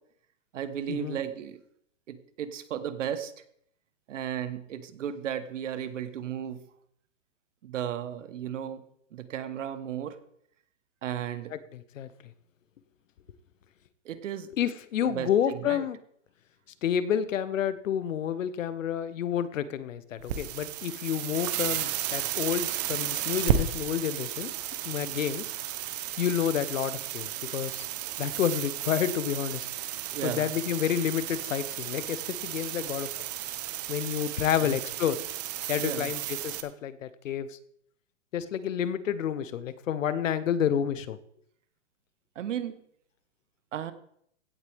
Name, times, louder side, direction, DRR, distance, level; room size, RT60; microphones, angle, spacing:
voice 1, 0.5-1.6 2.1-3.3 4.1-6.6 7.6-8.8 9.1-10.2 11.0-11.5 14.0-14.5 15.0-15.9 30.1-30.5 34.6-34.8 35.8-36.1 42.3-42.8 43.7-43.9, right 9 dB, 70° right, 12 dB, 1.3 m, -34 dB
voice 2, 11.5-12.1 14.6-16.0 16.8-24.5 24.8-25.5 26.2-27.8 28.2-29.7 30.2-33.1 33.9-35.2 35.7-37.6 38.3-41.2, left 9 dB, 75° left, 14 dB, 1.0 m, -29 dB
sound 1, 20.2-36.6, right 11 dB, 30° right, 0.9 m, -33 dB
16.0 x 8.1 x 3.5 m, 0.68 s
hypercardioid pair, 155°, 38 cm